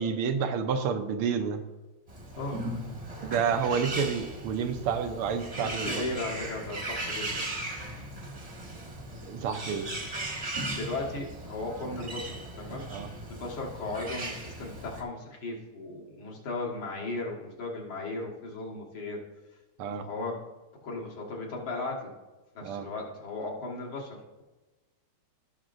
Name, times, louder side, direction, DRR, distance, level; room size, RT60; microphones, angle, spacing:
voice 1, 0.0-1.6 3.2-6.0 9.2-9.9 12.9-13.1 19.8-20.0 22.6-22.9, right 6 dB, 85° right, 7 dB, 1.7 m, -29 dB
Bird, 2.1-15.0, right 1 dB, 25° right, 0.8 m, -38 dB
voice 2, 5.6-7.5 10.7-12.9 13.3-19.2 20.0-20.4 20.8-22.1 22.6-24.4, left 2 dB, 70° left, -2 dB, 2.5 m, -36 dB
17.0 x 5.9 x 2.6 m, 1.1 s
omnidirectional pair, 2.4 m